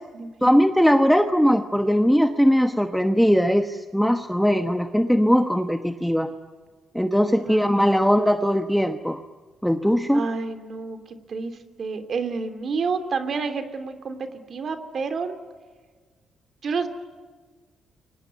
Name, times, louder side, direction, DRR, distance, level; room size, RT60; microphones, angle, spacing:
voice 1, 0.4-6.3 6.9-9.2 9.6-10.3, equal, ahead, 7 dB, 1.1 m, -20 dB
voice 2, 10.1-14.2 14.5-15.4 16.6-16.9, right 4 dB, 45° right, 9 dB, 2.9 m, -29 dB
29.5 x 24.0 x 8.3 m, 1.5 s
cardioid pair, 120°, 0 cm